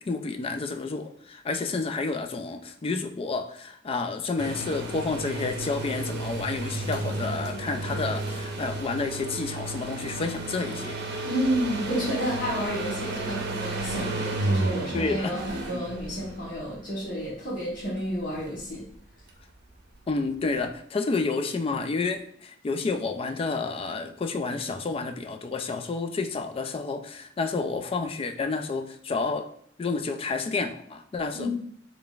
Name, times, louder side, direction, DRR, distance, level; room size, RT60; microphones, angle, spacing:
voice 1, 0.0-11.0 14.9-15.3 20.1-29.5 29.8-31.5, left 4 dB, 30° left, 7 dB, 0.3 m, -30 dB
sound 1, 4.4-16.7 18.3-18.4, right 2 dB, 60° right, 0.6 m, -32 dB
voice 2, 11.2-18.9 31.3-31.5, equal, 50° left, -8 dB, 1.2 m, -30 dB
3.8 x 3.4 x 2.3 m, 0.63 s
head